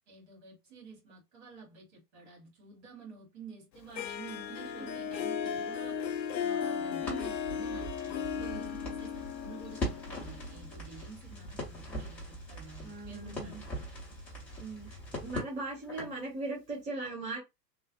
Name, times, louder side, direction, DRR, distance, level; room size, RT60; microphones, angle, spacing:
voice 1, 0.1-6.0 6.4-13.6 15.3-15.4, right 4 dB, 40° right, 1.8 m, -50 dB
Harp, 4.0-10.8, left 7 dB, 90° left, 0.5 m, -36 dB
Crackle, 7.0-16.2, equal, 5° left, 0.4 m, -41 dB
voice 2, 8.4-8.8 12.8-13.6 14.6-17.4, right 2 dB, 15° right, 0.9 m, -39 dB
3.1 x 2.0 x 2.8 m
figure-of-eight pair, 100°, 50 cm